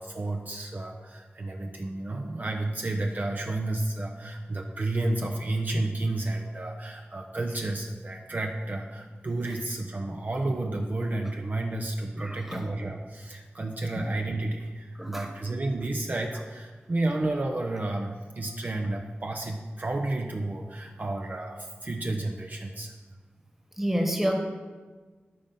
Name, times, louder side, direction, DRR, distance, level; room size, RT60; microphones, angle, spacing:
voice 1, 0.0-22.9, right 2 dB, 45° right, 2 dB, 0.7 m, -31 dB
voice 2, 12.1-12.7 14.0-14.1 15.0-15.3 23.8-24.4, equal, 5° right, 3 dB, 1.4 m, -29 dB
11.5 x 3.9 x 5.5 m, 1.4 s
cardioid pair, 50°, 4 cm